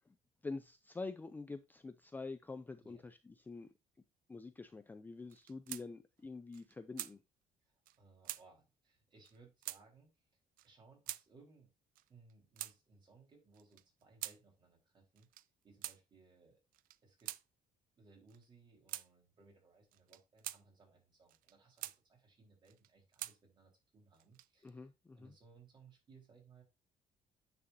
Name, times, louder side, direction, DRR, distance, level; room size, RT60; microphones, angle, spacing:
voice 1, 0.4-3.7 4.3-7.2 24.6-25.3, left 3 dB, 15° left, 0.4 m, -46 dB
sound 1, 5.3-5.9 6.2-6.3 6.5-7.1 7.9-8.0 8.2-8.4 9.2-9.4 9.6-9.8 10.6-10.7 11.1-11.2 12.0-12.8 13.5-14.4 15.2-15.5 15.8-16.0 16.7-17.4 18.3-18.4 18.9-19.1 19.9-20.6 21.3-22.0 22.6-23.4 24.1-24.7, right 16 dB, 80° right, 0.5 m, -45 dB
voice 2, 7.6-10.1 10.6-11.7 12.1-15.3 15.6-16.6 17.0-17.3 18.0-24.8 25.2-26.6, right 4 dB, 35° right, 4.2 m, -64 dB
9.5 x 6.2 x 2.7 m
cardioid pair, 150°, 14 cm